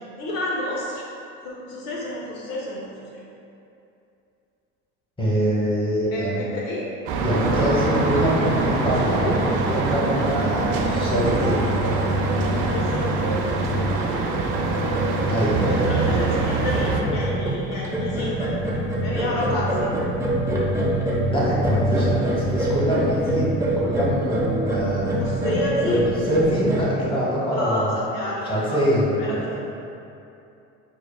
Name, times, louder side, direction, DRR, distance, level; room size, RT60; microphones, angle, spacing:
voice 1, 0.2-1.0 1.4-3.0 6.1-6.8 12.7-13.4 14.1-14.5 15.6-18.5 19.0-19.9 25.2-26.1 27.5-28.9 29.2-29.6, left 1 dB, 65° left, -5 dB, 0.8 m, -29 dB
voice 2, 5.2-6.4 7.2-9.4 9.6-11.6 15.3-16.4 21.2-23.5 23.8-25.1 25.8-26.0 26.3-27.9 28.4-29.4, equal, 15° left, -6 dB, 1.2 m, -24 dB
sound 1, 7.1-17.0, right 4 dB, 60° right, 0.6 m, -24 dB
sound 2, 7.3-26.8, right 1 dB, 10° right, 0.7 m, -26 dB
6.3 x 2.4 x 2.3 m, 2.7 s
supercardioid pair, 90°, 35 cm